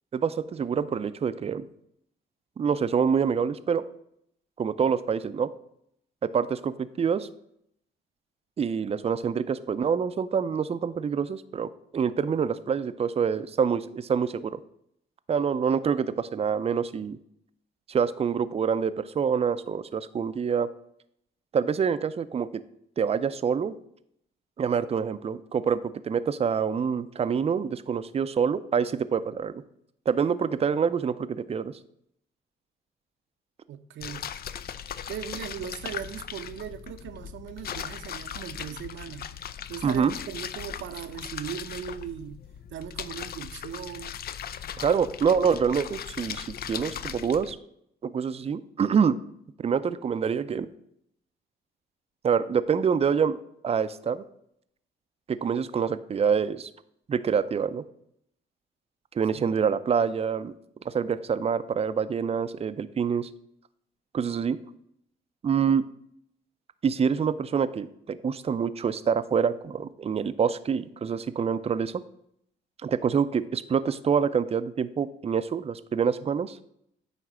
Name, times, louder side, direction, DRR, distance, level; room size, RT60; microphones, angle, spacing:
voice 1, 0.1-1.7 2.6-3.8 4.6-5.5 6.2-7.3 8.6-14.6 15.3-17.2 17.9-20.7 21.5-22.5 23.0-23.7 24.6-29.6 30.1-31.7 39.8-40.1 44.8-47.6 48.0-49.2 49.6-50.7 52.2-54.2 55.3-56.7 57.1-57.8 59.1-60.5 60.8-63.3 64.1-64.6 65.4-65.8 66.8-72.0 72.8-76.6, right 6 dB, 30° right, 0.5 m, -26 dB
voice 2, 33.7-34.4 35.1-39.3 39.7-42.4 42.7-44.2 44.9-45.0 59.3-59.5, right 9 dB, 75° right, 0.7 m, -38 dB
sound 1, 34.0-47.5, left 9 dB, 50° left, 0.5 m, -38 dB
9.3 x 3.2 x 6.0 m
cardioid pair, 90°, 20 cm